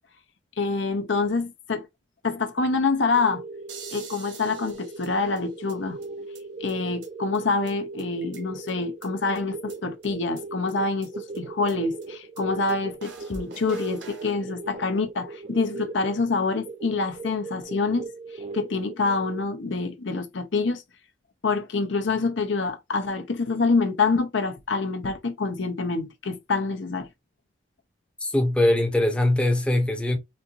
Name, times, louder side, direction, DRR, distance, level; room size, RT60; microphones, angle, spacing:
voice 1, 0.6-1.9 2.2-3.4 3.9-6.0 6.6-18.1 18.5-20.8 21.4-27.1, left 4 dB, 80° left, 0.8 m, -26 dB
sound 1, 3.1-19.4, right 3 dB, 35° right, 0.5 m, -39 dB
sound 2, 3.7-5.7 6.0-6.1 6.3-6.4 6.7-6.8 7.0-7.1 7.3-7.4 7.7-7.8 8.0-8.7 9.0-9.1 9.4-9.5 9.7-9.8 10.0-10.1 10.4-10.5 10.7-10.8 11.0-11.1 11.3-11.4 11.7-11.8 12.0-12.1 12.4-12.5 12.7-12.8 13.0-14.3, right 4 dB, 70° right, 1.2 m, -44 dB
voice 2, 28.2-30.2, left 1 dB, 5° left, 0.7 m, -22 dB
4.2 x 2.6 x 2.4 m
head